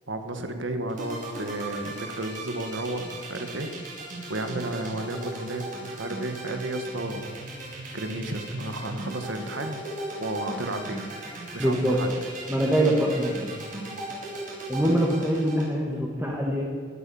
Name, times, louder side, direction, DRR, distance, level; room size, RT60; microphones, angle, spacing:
voice 1, 0.1-3.7 4.3-7.3 7.9-9.8 10.2-11.0 11.5-12.1, right 1 dB, 90° right, 7 dB, 1.7 m, -32 dB
sound 1, 0.9-15.7, right 2 dB, 45° right, 4.9 m, -37 dB
voice 2, 11.6-12.0 12.5-13.5 14.7-16.6, right 1 dB, 10° right, -2 dB, 1.8 m, -24 dB
16.5 x 11.5 x 7.1 m, 2.1 s
head